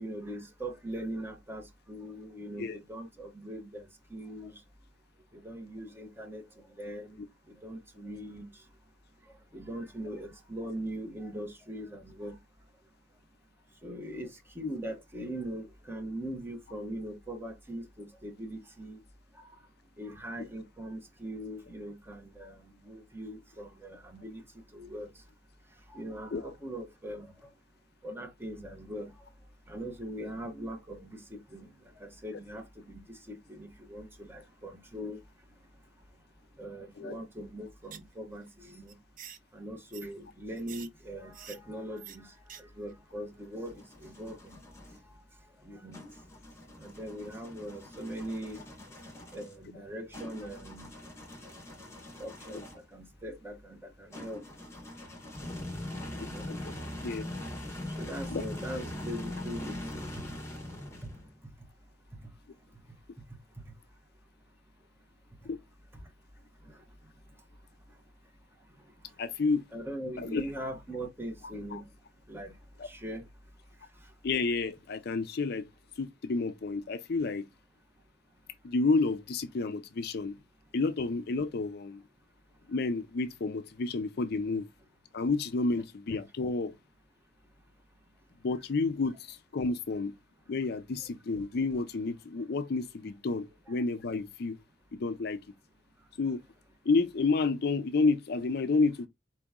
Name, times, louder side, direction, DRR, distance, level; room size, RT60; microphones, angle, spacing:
voice 1, 0.0-4.6 5.3-7.2 7.5-8.5 9.5-12.4 13.8-14.3 14.5-19.0 20.0-24.4 24.7-25.1 25.9-27.3 28.0-29.1 29.7-35.2 36.6-39.0 39.5-44.6 45.6-46.0 46.8-48.6 49.3-50.9 52.2-52.6 52.9-54.4 56.2-56.5 58.0-60.3 61.0-61.1 66.6-66.8 69.7-71.9 72.3-72.5 72.8-73.3, right 1 dB, 10° right, 1.0 m, -41 dB
sound 1, 37.8-38.1 38.4-38.5 38.9-39.4 39.9-40.1 40.6-40.9 41.3-41.6 42.0-42.2 42.5-42.6 42.9-43.0, right 9 dB, 40° right, 0.5 m, -46 dB
sound 2, 43.2-45.0 45.9-52.9 54.1-61.4, left 1 dB, 15° left, 1.1 m, -42 dB
voice 2, 69.2-69.6 70.2-70.4 71.7-71.8 72.8-72.9 74.2-75.7 76.0-77.5 78.6-80.4 80.7-82.0 82.7-84.7 85.1-86.7 88.4-90.1 90.5-94.6 94.9-95.4 96.2-96.4 96.8-99.1, left 3 dB, 55° left, 0.4 m, -30 dB
4.4 x 2.9 x 3.6 m
head